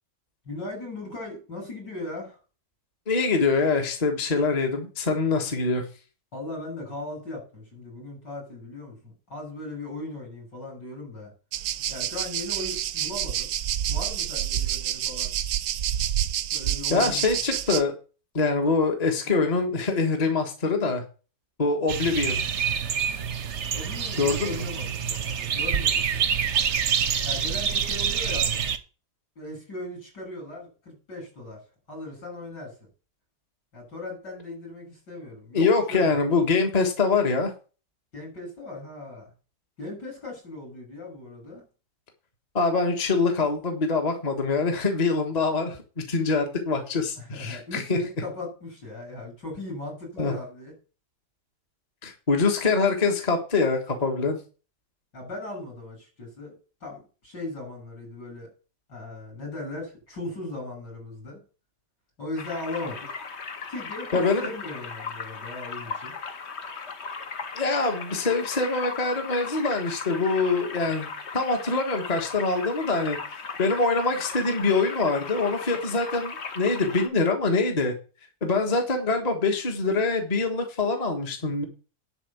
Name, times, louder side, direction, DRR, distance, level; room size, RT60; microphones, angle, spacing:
voice 1, 0.5-2.4 6.3-11.3 11.9-13.5 13.9-15.3 16.5-17.4 23.7-26.3 27.2-28.6 29.4-31.6 31.9-32.9 33.7-36.1 38.1-39.3 39.8-41.6 47.2-50.7 55.1-56.6 56.8-58.5 58.9-61.4 62.2-63.2 63.7-66.1, left 2 dB, 75° left, 0 dB, 7.3 m, -38 dB
voice 2, 3.1-5.8 16.9-17.9 18.3-21.0 21.6-22.4 24.2-24.7 35.5-37.5 42.5-48.0 50.2-50.3 52.0-54.4 64.1-64.5 67.5-73.2 73.6-77.9 78.4-81.6, left 4 dB, 25° left, 4 dB, 1.4 m, -24 dB
sound 1, 11.5-17.8, right 11 dB, 70° right, 1.1 m, -28 dB
sound 2, 21.9-28.8, right 7 dB, 50° right, 1.0 m, -26 dB
sound 3, 62.4-77.1, left 5 dB, 45° left, 1.2 m, -37 dB
11.0 x 4.3 x 8.0 m, 0.35 s
omnidirectional pair, 1.9 m